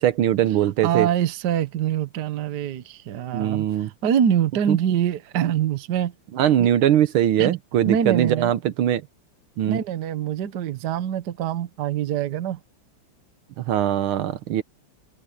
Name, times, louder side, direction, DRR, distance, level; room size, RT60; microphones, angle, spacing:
voice 1, 0.0-1.1 3.3-3.9 4.7-4.8 6.3-9.0 9.6-9.8 13.6-14.6, right 11 dB, 75° right, 1.6 m, -21 dB
voice 2, 0.8-6.1 6.6-6.7 7.4-7.5 7.9-8.5 9.7-12.6, right 9 dB, 60° right, 1.4 m, -24 dB
omnidirectional pair, 2.4 m